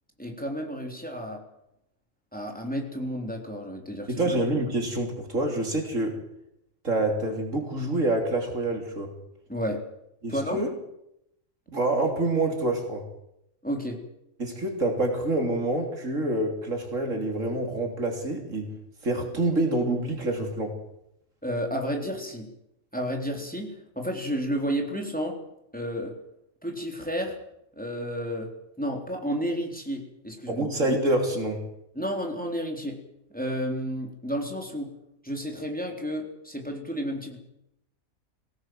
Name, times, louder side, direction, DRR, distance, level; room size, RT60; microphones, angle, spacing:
voice 1, 0.2-1.4 2.3-4.2 9.5-9.8 10.3-10.6 13.6-14.0 21.4-22.5 22.9-25.4 25.7-26.1 26.6-27.4 27.8-28.5 28.8-30.7 32.0-33.0 33.3-34.9 35.2-37.4, equal, 5° left, 1 dB, 3.8 m, -31 dB
voice 2, 4.1-6.2 6.8-9.1 10.2-10.7 11.7-13.1 14.4-18.7 19.0-20.7 30.5-31.6, right 2 dB, 70° right, 3 dB, 3.8 m, -27 dB
22.5 x 18.0 x 7.9 m, 0.81 s
omnidirectional pair, 1.4 m